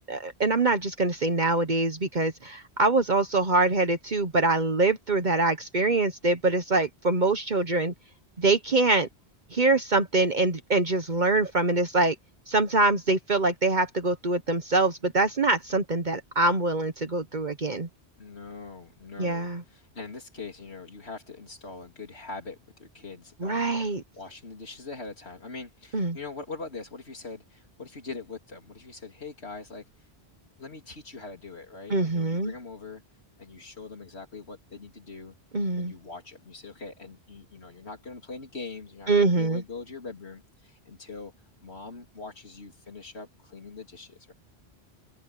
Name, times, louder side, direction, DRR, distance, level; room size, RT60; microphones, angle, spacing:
voice 1, 0.1-7.9 8.4-9.1 9.5-12.1 12.5-17.9 19.2-19.6 23.4-24.0 25.9-26.2 31.9-32.5 35.5-35.9 39.1-39.6, right 2 dB, 45° right, 1.3 m, -24 dB
voice 2, 18.2-30.1 30.6-33.0 33.4-35.3 35.7-41.3 41.6-44.3, left 3 dB, 80° left, 3.8 m, -42 dB
omnidirectional pair, 1.1 m